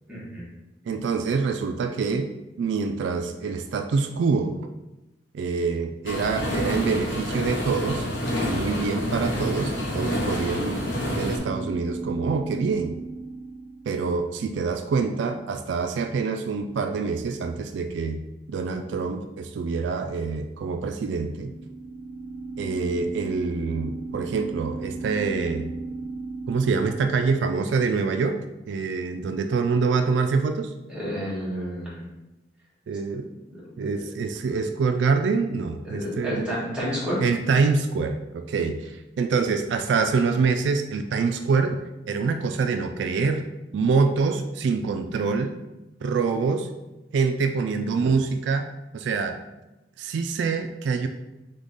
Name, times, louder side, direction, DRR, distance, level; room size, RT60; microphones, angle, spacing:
voice 1, 0.1-0.5 30.9-32.0 33.5-33.8 35.8-37.2, equal, 5° right, -8 dB, 1.6 m, -30 dB
voice 2, 0.9-2.3 2.6-4.6 5.3-8.1 8.5-13.0 13.9-18.2 18.5-21.5 22.6-25.7 26.5-28.3 28.7-30.7 32.9-33.3 33.8-36.4 37.2-43.4 43.7-45.5 46.0-46.7 47.1-48.7 48.9-49.4 50.0-51.1, right 4 dB, 70° right, 6 dB, 0.3 m, -25 dB
sound 1, 6.0-11.4, left 1 dB, 85° left, 1.1 m, -28 dB
sound 2, 10.7-14.8 20.8-27.8, right 3 dB, 40° right, 0.7 m, -36 dB
3.6 x 3.5 x 3.9 m, 1.0 s
head